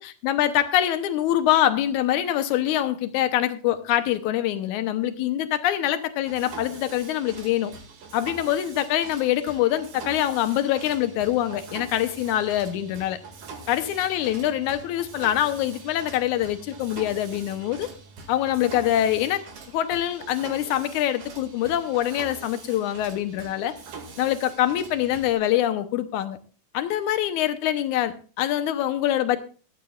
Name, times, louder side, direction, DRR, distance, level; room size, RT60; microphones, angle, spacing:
voice 1, 0.0-7.7 8.1-13.2 13.7-17.9 18.3-19.4 19.7-23.7 24.2-26.4 26.7-29.4, left 12 dB, 75° left, 11 dB, 2.2 m, -24 dB
Mechanisms, 6.2-25.3, right 4 dB, 65° right, 3.5 m, -43 dB
17.0 x 13.5 x 2.4 m, 0.38 s
omnidirectional pair, 3.7 m